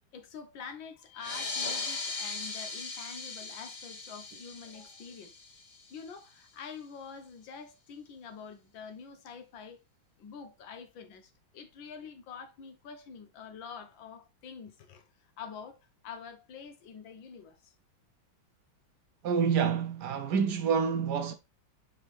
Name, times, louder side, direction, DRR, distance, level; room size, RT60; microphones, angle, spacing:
voice 1, 0.1-5.3 5.9-9.8 10.2-15.0 15.4-15.8 16.0-17.7, left 6 dB, 70° left, 1.7 m, -46 dB
sound 1, 1.1-6.2, left 4 dB, 50° left, 0.5 m, -39 dB
voice 2, 19.2-21.3, right 6 dB, 70° right, 1.1 m, -27 dB
7.1 x 4.1 x 3.1 m
omnidirectional pair, 2.2 m